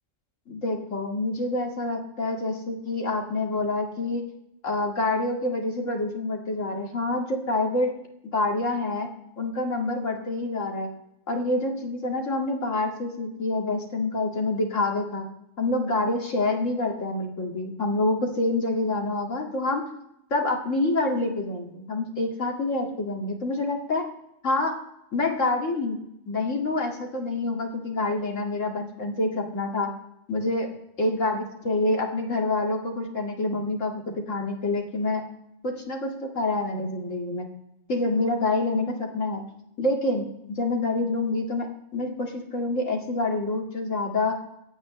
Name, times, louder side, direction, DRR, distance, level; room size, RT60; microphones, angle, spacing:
voice 1, 0.5-4.2 4.6-7.9 8.3-9.1 9.4-10.9 11.3-15.3 15.6-19.8 20.3-24.0 24.4-24.7 25.1-26.0 26.3-29.9 30.3-30.7 31.0-35.2 35.6-37.5 37.9-39.4 39.8-41.7 41.9-44.4, left 2 dB, 75° left, 1 dB, 2.5 m, -27 dB
26.5 x 9.0 x 3.2 m, 0.81 s
omnidirectional pair, 1.3 m